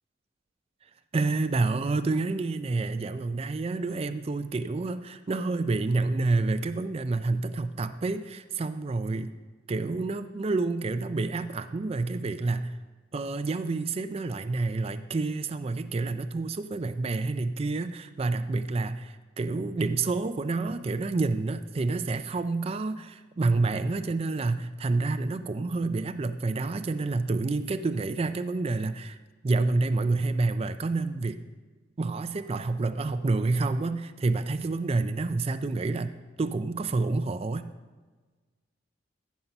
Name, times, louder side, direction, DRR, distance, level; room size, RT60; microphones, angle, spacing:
voice 1, 1.1-9.3 9.7-12.7 13.1-29.2 29.4-31.4 32.0-36.1 36.4-37.7, right 3 dB, 30° right, 10 dB, 0.4 m, -28 dB
15.0 x 5.5 x 5.6 m, 1.3 s
head